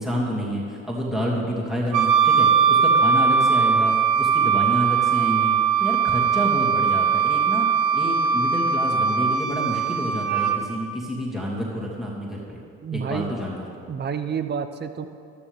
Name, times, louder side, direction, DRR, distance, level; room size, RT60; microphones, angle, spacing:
voice 1, 0.0-7.7 7.9-12.6 12.9-13.8, equal, ahead, -5 dB, 2.6 m, -29 dB
Wind instrument woodwind instrument, 1.9-10.6, right 6 dB, 75° right, 1.0 m, -20 dB
voice 2, 12.8-13.3 13.9-15.1, right 7 dB, 35° right, 10 dB, 0.8 m, -29 dB
14.0 x 12.0 x 3.7 m, 2.3 s
supercardioid pair, 80°, 31 cm